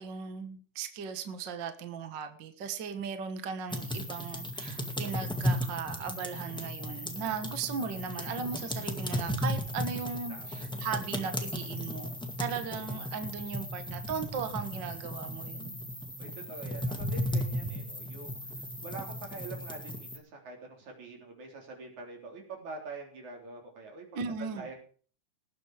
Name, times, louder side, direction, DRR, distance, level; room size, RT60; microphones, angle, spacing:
voice 1, 0.0-15.8 24.1-24.7, right 6 dB, 50° right, 1.6 m, -37 dB
sound 1, 3.7-20.2, equal, ahead, 1.4 m, -35 dB
voice 2, 10.3-10.7 16.2-18.4 18.8-24.8, right 3 dB, 75° right, 5.0 m, -45 dB
19.5 x 8.2 x 5.0 m
omnidirectional pair, 3.4 m